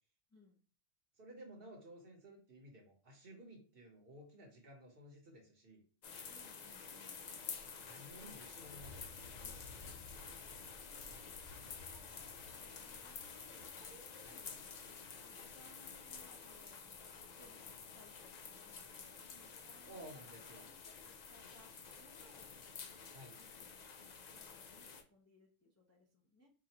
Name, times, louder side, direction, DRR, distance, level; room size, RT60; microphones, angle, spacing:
voice 1, 0.3-0.6 6.3-7.2 11.4-17.7 17.9-20.3 20.6-22.9 23.3-26.5, equal, 15° left, -3 dB, 0.6 m, -66 dB
voice 2, 1.2-5.8 7.6-11.2 14.2-14.4 19.8-20.6 23.1-23.3, right 1 dB, 50° right, 1 dB, 1.1 m, -56 dB
sound 1, 6.0-25.0, left 5 dB, 90° left, 0.3 m, -50 dB
4.8 x 2.4 x 2.9 m, 0.40 s
omnidirectional pair, 1.3 m